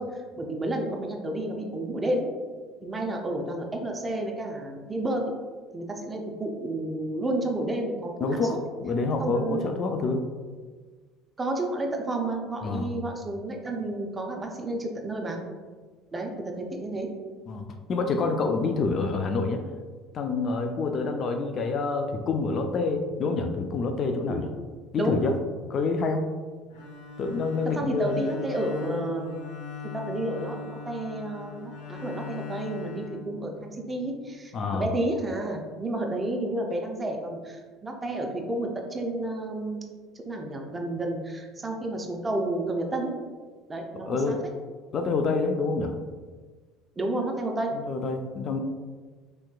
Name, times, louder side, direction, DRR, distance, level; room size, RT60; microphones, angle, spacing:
voice 1, 0.0-2.3 2.8-5.3 5.7-8.6 9.2-9.7 11.4-15.4 16.1-16.3 16.6-17.1 24.3-24.5 25.0-25.2 27.7-29.4 29.9-39.8 40.2-43.1 43.7-44.4 47.0-47.8, right 1 dB, 20° right, 2 dB, 0.5 m, -31 dB
voice 2, 8.2-10.2 12.6-12.9 17.5-19.6 20.1-24.5 24.9-25.3 25.7-26.2 27.2-28.2 34.5-34.9 44.1-44.4 44.9-45.9 47.7-48.6, left 4 dB, 45° left, 5 dB, 0.3 m, -27 dB
Bowed string instrument, 26.7-33.9, left 5 dB, 90° left, 0.6 m, -40 dB
3.3 x 2.9 x 2.3 m, 1.4 s
supercardioid pair, 95°, 0 cm